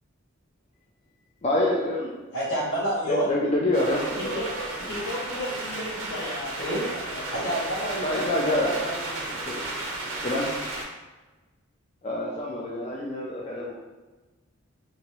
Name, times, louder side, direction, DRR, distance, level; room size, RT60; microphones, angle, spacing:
voice 1, 1.4-2.4 3.1-4.7 8.0-8.8 9.3-9.7 10.2-10.5 12.0-13.8, left 1 dB, 30° left, -4 dB, 0.3 m, -27 dB
voice 2, 2.3-3.3 6.6-6.9 7.3-9.3, right 1 dB, 85° left, -7 dB, 1.2 m, -29 dB
sound 1, 3.7-10.8, right 2 dB, 65° right, 0.7 m, -34 dB
voice 3, 4.2-4.5 4.9-7.4 8.0-8.2, left 1 dB, 50° left, -5 dB, 0.7 m, -35 dB
2.9 x 2.5 x 3.0 m, 1.2 s
head